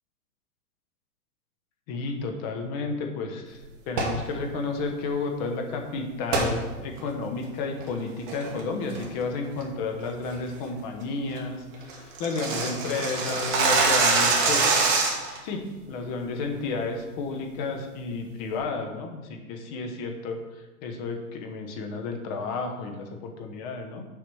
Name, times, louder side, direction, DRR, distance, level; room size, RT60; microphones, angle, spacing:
voice 1, 1.9-14.8 15.4-24.0, left 3 dB, 25° left, 4 dB, 1.0 m, -32 dB
sound 1, 3.9-4.2 6.3-6.5 7.0-7.1 7.6-7.9 8.3-8.6 8.9-9.2 9.6-9.7 10.1-10.3 10.7-10.8 11.1-11.2 11.4-11.5 11.7-15.4, right 4 dB, 35° right, 1.6 m, -24 dB
6.9 x 4.9 x 7.0 m, 1.2 s
hypercardioid pair, 150°, 46 cm